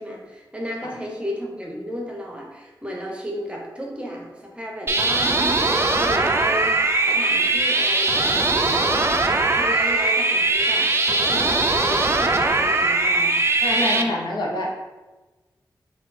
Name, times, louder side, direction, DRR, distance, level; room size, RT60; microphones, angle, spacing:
voice 1, 0.0-9.1 9.5-13.4 13.8-14.3, equal, 15° right, -1 dB, 0.8 m, -34 dB
sound 1, 4.9-14.0, right 2 dB, 30° right, 0.4 m, -20 dB
voice 2, 13.6-14.8, left 1 dB, 65° left, -2 dB, 0.8 m, -26 dB
4.1 x 2.4 x 4.1 m, 1.2 s
wide cardioid pair, 90°, 8 cm